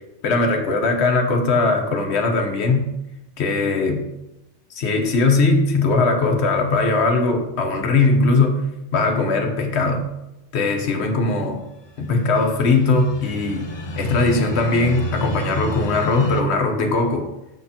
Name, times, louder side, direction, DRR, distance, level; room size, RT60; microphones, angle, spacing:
voice 1, 0.2-2.9 3.4-4.1 4.7-8.7 8.9-10.1 10.5-11.6 12.0-17.2, left 3 dB, 75° left, 4 dB, 1.1 m, -20 dB
sound 1, 11.9-16.4, left 1 dB, 40° left, 0.4 m, -31 dB
6.6 x 6.3 x 2.8 m, 0.92 s
omnidirectional pair, 1.2 m